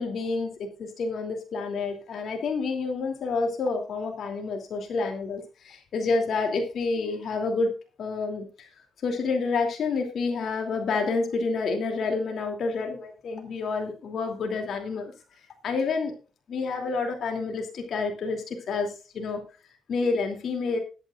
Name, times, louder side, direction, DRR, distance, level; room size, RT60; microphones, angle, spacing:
voice 1, 0.0-7.7 8.0-8.7 9.0-15.1 15.6-16.1 16.5-19.4 19.9-20.8, left 4 dB, 60° left, 3 dB, 2.8 m, -29 dB
19.5 x 9.1 x 2.5 m, 0.34 s
cardioid pair, 90°, 0 cm